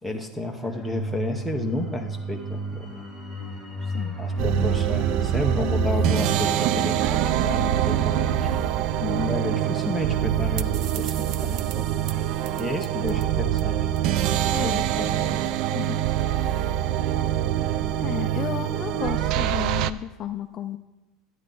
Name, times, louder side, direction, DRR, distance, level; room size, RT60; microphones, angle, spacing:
voice 1, 0.0-3.0 4.2-8.3 9.3-11.9 12.6-13.8 14.6-15.4, left 1 dB, ahead, 6 dB, 0.8 m, -31 dB
sound 1, 0.6-13.0 13.3-13.5, right 3 dB, 20° right, 1.1 m, -32 dB
voice 2, 3.8-4.2 9.0-9.4 14.5-14.8 15.7-16.1 16.4-16.6 18.0-20.8, left 10 dB, 30° left, 7 dB, 0.4 m, -33 dB
sound 2, 4.4-19.9, right 11 dB, 50° right, 0.3 m, -25 dB
11.5 x 9.4 x 3.8 m, 0.99 s
cardioid pair, 165°, 0 cm